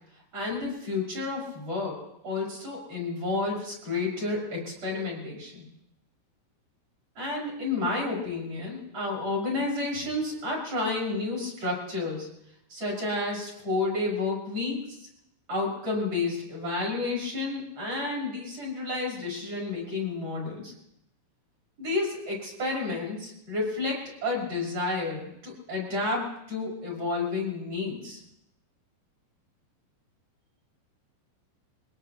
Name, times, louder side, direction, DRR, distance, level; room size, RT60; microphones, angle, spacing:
voice 1, 0.3-5.6 7.2-12.3 12.7-15.1 15.5-20.7 21.8-28.2, left 3 dB, 30° right, -4 dB, 6.5 m, -31 dB
24.5 x 18.5 x 3.0 m, 0.80 s
omnidirectional pair, 5.7 m